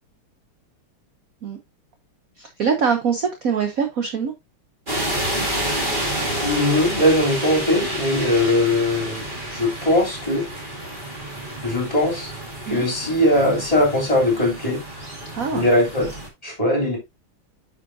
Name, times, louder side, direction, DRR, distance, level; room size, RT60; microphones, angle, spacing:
voice 1, 2.4-4.3 12.7-12.8 15.3-15.7, right 6 dB, 50° right, 1.2 m, -23 dB
sound 1, 4.9-16.3, equal, 25° right, 2.0 m, -29 dB
voice 2, 6.4-10.5 11.6-12.3 12.7-14.8 15.5-16.1 16.4-17.0, left 1 dB, 15° left, 3.6 m, -20 dB
9.5 x 5.4 x 2.8 m
omnidirectional pair, 2.4 m